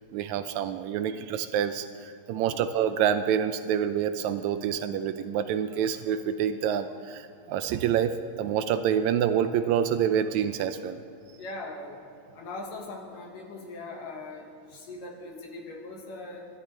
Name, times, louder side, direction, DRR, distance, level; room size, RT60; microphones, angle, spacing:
voice 1, 0.1-11.0, right 9 dB, 90° right, 10 dB, 1.6 m, -27 dB
voice 2, 11.4-12.0 12.3-16.5, left 2 dB, 75° left, -1 dB, 3.2 m, -40 dB
29.0 x 13.0 x 3.3 m, 2.6 s
omnidirectional pair, 3.9 m